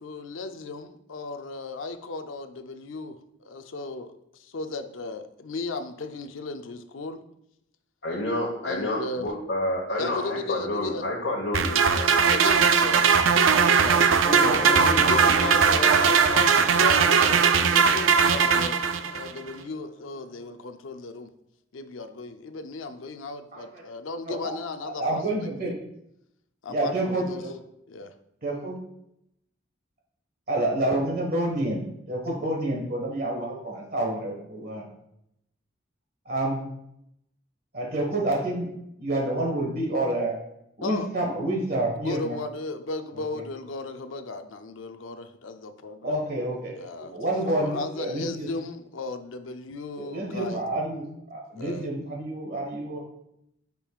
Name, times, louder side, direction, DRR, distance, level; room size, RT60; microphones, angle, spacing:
voice 1, 0.0-4.1 4.5-7.2 8.6-9.3 10.0-11.1 12.3-13.0 13.7-14.1 14.6-18.8 19.1-21.3 21.7-25.8 26.6-27.4 27.9-28.1 40.8-41.1 42.0-46.2 46.8-47.1 47.4-50.6 51.5-51.9, left 3 dB, 85° left, 9 dB, 0.6 m, -35 dB
voice 2, 8.0-12.4 13.0-13.1, left 1 dB, 65° left, -4 dB, 1.3 m, -29 dB
sound 1, 11.5-19.3, right 6 dB, 90° right, 0.5 m, -20 dB
Gong, 14.2-20.1 20.4-20.5, equal, ahead, 1.9 m, -35 dB
voice 3, 23.5-23.8 24.3-24.4 25.0-25.7 26.7-27.5 28.4-28.8 30.5-34.8 36.2-36.6 37.7-38.7 39.0-40.4 40.8-42.4 43.3-43.4 46.0-48.5 49.9-53.0, right 1 dB, 50° right, 0 dB, 1.4 m, -28 dB
8.9 x 5.4 x 2.4 m, 0.78 s
head